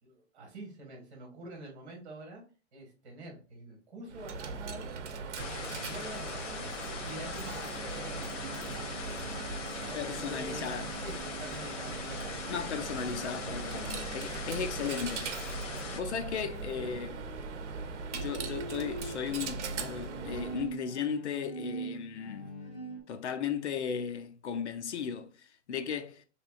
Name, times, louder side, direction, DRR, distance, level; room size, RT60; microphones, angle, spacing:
voice 1, 0.0-2.4 2.7-5.2 5.6-6.7 7.0-10.7 11.0-12.4 12.8-12.9 13.5-13.9 14.3-14.4, right 2 dB, 40° right, 1.9 m, -47 dB
Coin (dropping), 4.1-20.7, right 5 dB, 75° right, 0.9 m, -40 dB
sound 1, 5.4-16.0, left 5 dB, 85° left, 1.2 m, -41 dB
voice 2, 9.9-10.9 12.5-15.6 15.9-17.2 18.1-22.5 23.1-26.2, left 7 dB, 70° left, 0.7 m, -36 dB
Bowed string instrument, 18.0-23.0, right 3 dB, 10° left, 0.5 m, -42 dB
5.7 x 3.4 x 2.5 m
hypercardioid pair, 180°, 36 cm